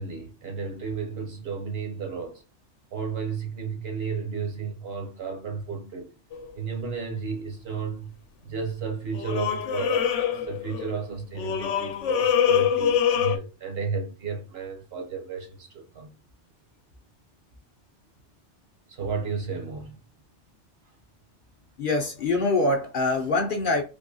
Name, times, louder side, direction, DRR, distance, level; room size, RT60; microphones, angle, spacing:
voice 1, 0.0-2.4 2.9-6.1 6.5-8.1 8.4-10.1 10.5-16.1 18.9-20.0, right 5 dB, 60° right, 1.2 m, -33 dB
sound 1, 6.3-6.5 9.1-11.0 11.4-13.4, left 8 dB, 90° left, 0.9 m, -24 dB
voice 2, 21.8-23.8, left 2 dB, 55° left, 0.7 m, -24 dB
3.5 x 2.7 x 2.7 m
omnidirectional pair, 1.2 m